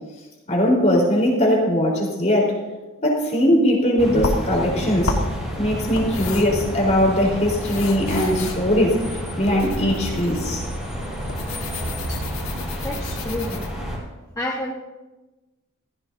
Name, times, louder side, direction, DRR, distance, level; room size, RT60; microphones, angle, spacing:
voice 1, 0.5-2.6 3.0-5.1 5.6-9.0 9.4-10.6, equal, 35° left, -3 dB, 3.9 m, -20 dB
sound 1, 4.0-14.0, equal, ahead, 4.9 m, -30 dB
sound 2, 4.2-13.7, left 2 dB, 65° left, 1.7 m, -32 dB
voice 2, 12.8-13.6 14.4-14.7, left 1 dB, 15° left, -3 dB, 1.1 m, -29 dB
15.5 x 15.5 x 2.7 m, 1.1 s
head